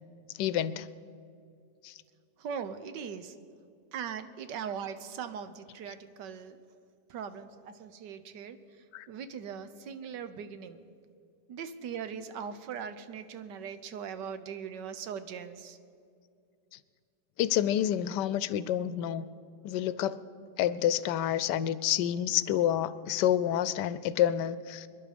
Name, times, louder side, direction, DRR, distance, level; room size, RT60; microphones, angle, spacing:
voice 1, 0.4-0.9 1.8-1.9 8.9-9.1 17.4-19.3 19.6-20.2 20.6-24.9, left 11 dB, 80° left, 16 dB, 1.2 m, -28 dB
voice 2, 2.4-3.4 3.9-6.6 7.1-10.8 11.5-15.8, right 7 dB, 85° right, 11 dB, 1.5 m, -40 dB
25.5 x 11.0 x 5.1 m, 2.4 s
omnidirectional pair, 1.8 m